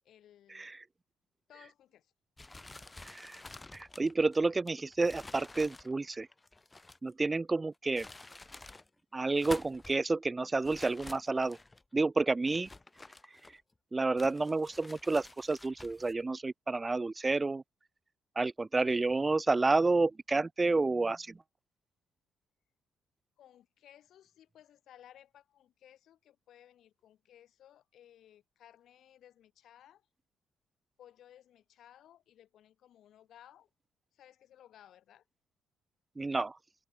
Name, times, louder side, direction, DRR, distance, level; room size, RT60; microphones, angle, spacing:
voice 1, 0.0-0.7 1.5-2.1 23.4-30.1 31.0-33.7 34.1-35.2, left 11 dB, 70° left, 4.5 m, -59 dB
sound 1, 2.4-7.1 7.7-8.9 9.2-10.0 10.6-11.8 12.4-13.7 14.2-16.1, left 2 dB, 15° left, 0.8 m, -50 dB
voice 2, 3.0-3.4 3.7-6.3 7.0-8.1 9.1-11.6 11.9-12.7 13.9-17.6 18.4-21.4 36.2-36.6, right 3 dB, 25° right, 0.3 m, -30 dB
cardioid pair, 90°, 0 cm